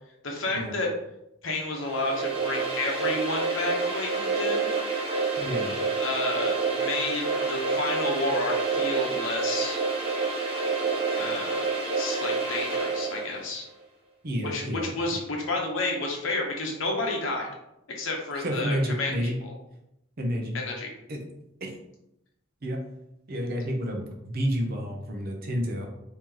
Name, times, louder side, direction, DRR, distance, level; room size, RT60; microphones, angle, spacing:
voice 1, 0.2-0.9 1.4-4.7 6.0-9.8 11.2-13.7 14.4-17.5 17.9-19.5 20.5-20.9, left 2 dB, 70° left, 0 dB, 0.9 m, -30 dB
sound 1, 1.8-13.4, right 4 dB, 25° right, 1.0 m, -28 dB
voice 2, 5.4-5.7 14.2-14.9 18.4-19.4 20.2-20.6 21.1-21.2 21.6-21.7 22.6-22.8 23.3-25.9, equal, 50° right, 1 dB, 0.6 m, -30 dB
3.0 x 2.8 x 3.7 m, 0.85 s
head